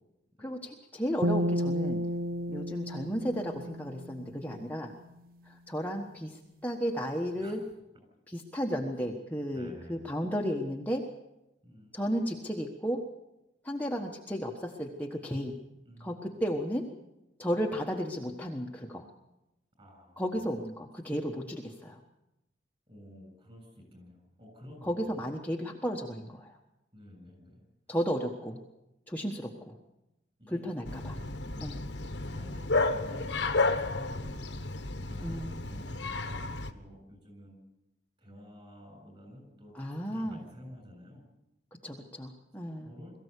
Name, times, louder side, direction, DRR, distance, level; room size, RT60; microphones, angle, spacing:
voice 1, 0.4-2.0 2.5-4.9 5.4-7.6 8.3-11.0 11.9-13.0 13.6-15.5 16.0-16.9 17.4-19.1 20.2-22.0 24.8-26.6 27.9-28.6 29.1-29.8 30.5-31.2 31.6-31.8 35.2-35.5 39.7-40.4 41.8-42.9, equal, 10° left, -1 dB, 1.3 m, -34 dB
sound 1, 1.2-4.6, equal, 55° right, 0.7 m, -32 dB
voice 2, 9.5-10.1 11.6-12.0 15.8-16.3 19.8-20.5 22.9-25.2 26.9-28.0 30.4-30.6 30.9-31.7 32.0-34.5 35.0-37.6 38.2-41.3 42.8-43.1, equal, 30° right, 5 dB, 7.4 m, -51 dB
Bark, 30.9-36.7, left 3 dB, 75° left, 1.4 m, -32 dB
22.5 x 15.0 x 8.3 m, 0.93 s
head